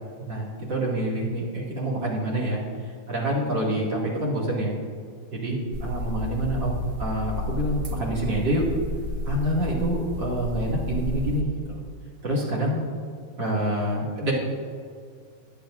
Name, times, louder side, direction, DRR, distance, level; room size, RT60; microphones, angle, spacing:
voice 1, 0.2-2.6 3.1-4.8 5.3-6.7 7.0-8.7 9.3-11.8 12.2-12.8 13.4-14.3, right 1 dB, 65° right, -4 dB, 3.0 m, -27 dB
sound 1, 5.7-11.4, left 2 dB, 85° right, 0.5 m, -32 dB
22.0 x 8.6 x 2.6 m, 2.2 s
omnidirectional pair, 2.2 m